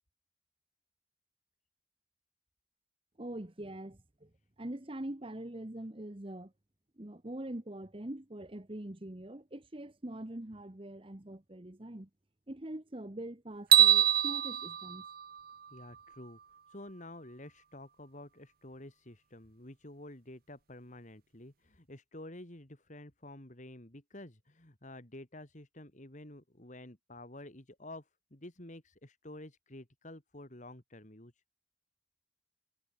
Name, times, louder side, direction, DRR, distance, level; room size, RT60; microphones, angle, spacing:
voice 1, 3.2-4.3 4.6-6.5 7.0-12.1 12.5-15.0, right 1 dB, 30° right, 1.2 m, -43 dB
sound 1, 13.7-16.0, right 12 dB, 50° right, 0.6 m, -25 dB
voice 2, 15.7-16.4 16.7-31.4, left 1 dB, 40° left, 2.6 m, -50 dB
head